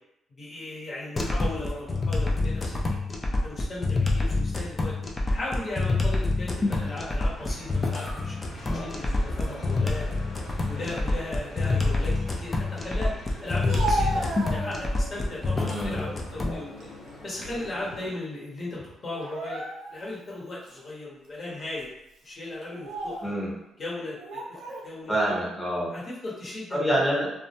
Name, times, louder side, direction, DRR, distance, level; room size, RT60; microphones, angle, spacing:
voice 1, 0.4-3.0 3.4-4.9 5.3-10.1 10.6-13.1 13.4-16.7 17.2-19.6 19.9-21.9 22.2-23.3 23.8-25.2 25.9-26.8, left 2 dB, 45° left, -6 dB, 0.9 m, -37 dB
sound 1, 1.2-16.6, left 2 dB, 25° left, 0.4 m, -27 dB
sound 2, 6.6-18.1, left 1 dB, 85° left, 0.9 m, -45 dB
Speech, 13.5-15.1 15.6-16.2 16.6-17.9 18.1-18.3 19.1-20.1 20.7-20.8 21.6-21.8 22.6-23.3 24.2-24.9, right 2 dB, 80° right, 0.5 m, -34 dB
voice 2, 15.6-16.0 23.2-23.5 25.1-26.0 26.7-27.3, right 1 dB, 5° left, -5 dB, 0.9 m, -26 dB
2.1 x 2.1 x 2.8 m, 0.85 s
cardioid pair, 90°, 0 cm